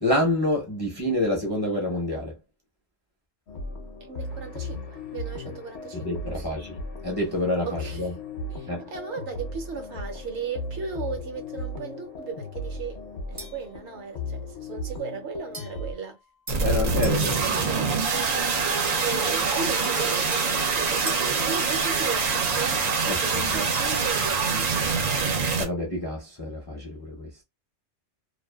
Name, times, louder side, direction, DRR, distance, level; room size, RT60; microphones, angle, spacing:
voice 1, 0.0-2.3 5.9-8.1 8.7-8.9 16.6-17.4 23.1-23.5 25.6-27.3, left 1 dB, 25° left, 0.5 m, -28 dB
sound 1, 3.5-15.9, left 2 dB, 65° left, 0.9 m, -37 dB
voice 2, 4.0-6.5 7.7-8.2 8.5-13.0 13.3-16.2 16.6-17.9 18.9-24.9, right 5 dB, 65° right, 1.0 m, -36 dB
sound 2, 13.4-13.7 15.5-17.3 19.7-21.4, right 1 dB, 25° right, 0.4 m, -41 dB
sound 3, 16.5-25.7, right 5 dB, 90° right, 1.0 m, -25 dB
2.5 x 2.3 x 2.2 m
omnidirectional pair, 1.3 m